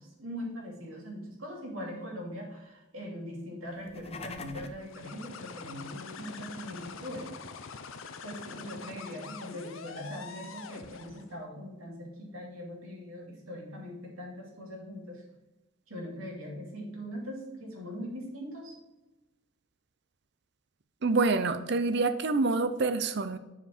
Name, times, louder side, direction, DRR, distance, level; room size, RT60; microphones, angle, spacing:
voice 1, 0.0-7.3 8.2-15.2 15.9-18.7, equal, 75° right, -2 dB, 2.6 m, -41 dB
sound 1, 3.7-4.9, left 4 dB, 30° left, 0.5 m, -43 dB
sound 2, 4.8-11.3, left 5 dB, 70° left, 0.7 m, -45 dB
voice 2, 21.0-23.4, right 3 dB, 50° right, 11 dB, 0.6 m, -27 dB
7.8 x 5.1 x 4.5 m, 1.0 s
head